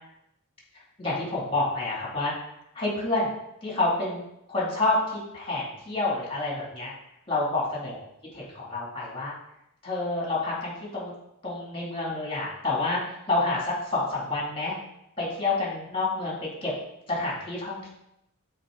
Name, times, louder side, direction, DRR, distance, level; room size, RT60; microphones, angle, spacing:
voice 1, 1.0-2.3 2.7-3.3 3.6-4.2 4.5-6.9 7.3-8.0 8.3-9.3 9.8-11.1 11.4-14.7 15.2-16.7 17.1-17.9, left 2 dB, 25° left, -4 dB, 2.4 m, -28 dB
8.0 x 4.5 x 3.8 m, 0.81 s
head